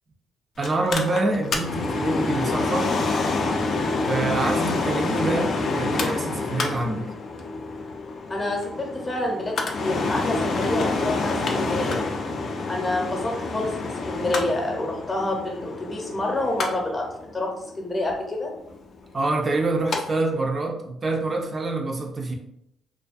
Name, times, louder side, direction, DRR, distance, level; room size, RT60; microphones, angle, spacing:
Mechanical fan, 0.6-20.0 20.3-20.4, left 3 dB, 60° left, 0.4 m, -27 dB
voice 1, 0.6-3.0 4.1-7.1 19.1-22.3, right 2 dB, 35° right, 2 dB, 0.4 m, -26 dB
voice 2, 8.3-12.1 12.7-17.0 17.3-17.5 17.8-18.5, left 2 dB, 30° left, 0 dB, 0.7 m, -28 dB
2.4 x 2.2 x 2.4 m, 0.78 s
cardioid pair, 90°, 0 cm